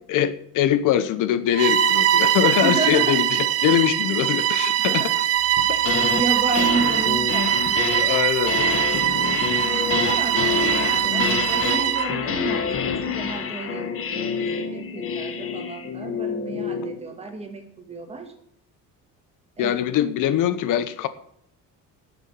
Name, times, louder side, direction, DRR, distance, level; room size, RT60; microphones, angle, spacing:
voice 1, 0.1-5.1 7.9-8.9 9.2-9.4 19.6-21.1, left 10 dB, 65° left, 14 dB, 0.9 m, -23 dB
Bowed string instrument, 1.5-12.1, right 11 dB, 45° right, 0.6 m, -22 dB
voice 2, 2.6-3.2 4.8-5.1 5.7-7.9 9.9-18.3 19.6-19.9, right 3 dB, 20° right, 4 dB, 2.0 m, -31 dB
sound 1, 5.6-6.2 6.5-17.0, left 6 dB, 40° left, 1.4 m, -27 dB
9.8 x 7.2 x 8.6 m, 0.70 s
cardioid pair, 170°, 34 cm